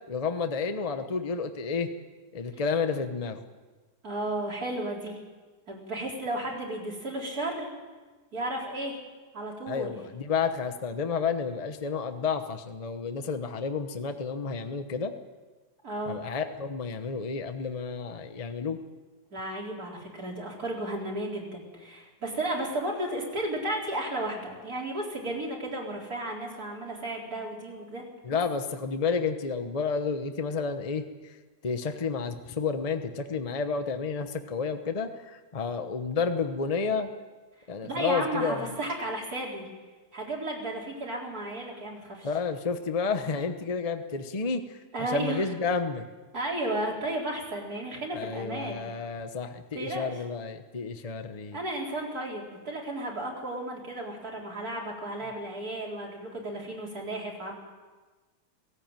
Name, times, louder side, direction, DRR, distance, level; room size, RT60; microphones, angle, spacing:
voice 1, 0.1-1.9 2.3-3.4 9.7-15.1 16.1-18.8 28.2-31.1 31.6-37.1 37.7-38.6 42.2-44.6 45.1-46.0 48.1-51.6, left 5 dB, 25° left, 8 dB, 1.0 m, -30 dB
voice 2, 4.0-5.2 5.7-7.7 8.3-9.0 9.3-9.9 15.8-16.2 19.3-28.0 28.3-28.4 37.8-39.7 40.1-42.3 44.9-45.5 46.3-48.8 49.7-50.1 51.5-57.5, right 1 dB, 60° right, -3 dB, 4.9 m, -33 dB
17.5 x 17.0 x 9.1 m, 1.3 s
omnidirectional pair, 1.7 m